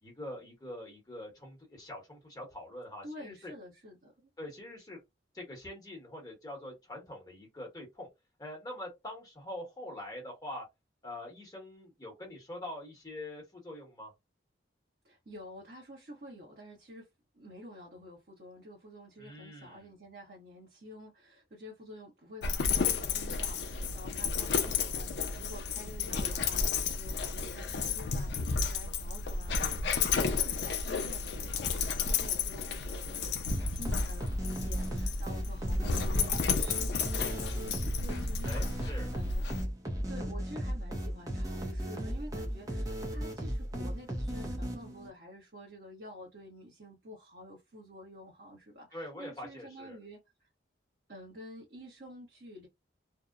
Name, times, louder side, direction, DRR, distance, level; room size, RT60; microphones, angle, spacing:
voice 1, 0.0-3.5 4.4-5.0 5.3-8.1 8.4-10.6 11.0-14.1 19.2-19.9 38.4-39.1 48.9-50.0, left 1 dB, 20° left, 1.0 m, -44 dB
voice 2, 3.0-4.3 15.0-17.1 17.3-33.3 33.7-39.4 40.1-50.5 51.1-52.7, equal, 55° right, 0.9 m, -49 dB
Dog, 22.4-39.6, left 5 dB, 60° left, 0.5 m, -32 dB
sound 1, 33.5-45.1, equal, 20° right, 0.5 m, -36 dB
2.7 x 2.0 x 2.3 m
head